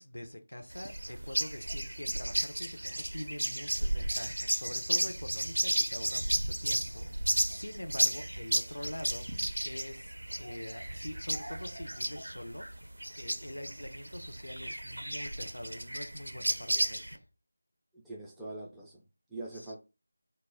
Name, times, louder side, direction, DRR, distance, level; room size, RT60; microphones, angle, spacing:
voice 1, 0.0-12.7 13.2-17.3 19.5-19.7, left 1 dB, 75° left, 0.5 m, -44 dB
sound 1, 0.7-17.2, right 1 dB, 75° right, 0.4 m, -33 dB
voice 2, 17.9-19.8, right 2 dB, 5° right, 0.3 m, -43 dB
2.1 x 2.0 x 3.4 m
figure-of-eight pair, 165°, 0 cm